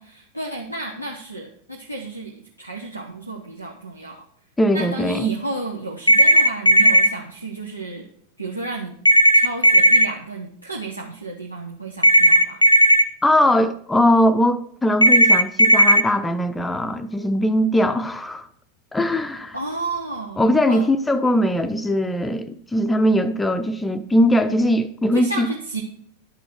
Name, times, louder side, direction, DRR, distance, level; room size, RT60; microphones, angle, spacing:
voice 1, 0.0-2.3 2.6-4.2 4.7-8.1 8.4-8.9 9.3-12.7 19.5-20.4 20.7-20.9 25.1-25.8, right 2 dB, 85° right, 1.1 m, -32 dB
voice 2, 4.6-5.3 13.2-18.5 18.9-19.6 20.4-25.5, equal, 10° left, 0.6 m, -20 dB
sound 1, 6.1-7.1 9.1-10.1 12.0-13.0 15.0-16.0, right 1 dB, 90° left, 0.7 m, -13 dB
11.5 x 6.2 x 4.5 m
figure-of-eight pair, 90°, 0 cm